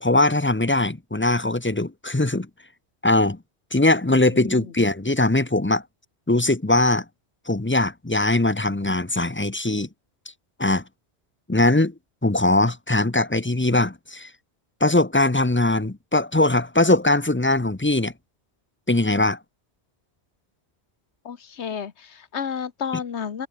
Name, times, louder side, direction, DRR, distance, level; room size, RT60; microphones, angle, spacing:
voice 1, 0.0-2.5 3.0-3.4 3.7-5.8 6.3-7.0 7.5-9.9 10.6-10.8 11.5-11.9 12.2-14.3 14.8-18.1 18.9-19.4, left 2 dB, 10° left, 0.8 m, -21 dB
voice 2, 4.1-4.7 21.2-23.5, left 7 dB, 85° left, 1.5 m, -32 dB
omnidirectional pair, 1.1 m